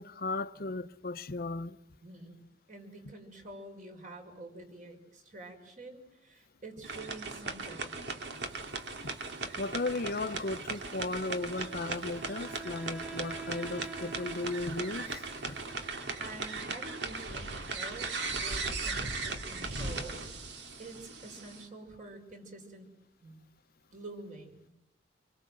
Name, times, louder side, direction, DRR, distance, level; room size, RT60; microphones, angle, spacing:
voice 1, 0.0-1.8 9.0-9.1 9.6-15.6, left 3 dB, 60° left, 0.9 m, -36 dB
voice 2, 2.0-2.4 2.7-8.0 16.2-18.1 18.4-20.2 20.8-22.9 23.2-23.4 23.9-24.7, right 2 dB, 45° right, 5.6 m, -47 dB
sound 1, 6.8-21.7, right 3 dB, 75° right, 2.7 m, -38 dB
Wind instrument woodwind instrument, 11.3-16.4, right 4 dB, 5° right, 1.1 m, -46 dB
28.0 x 24.0 x 7.7 m
head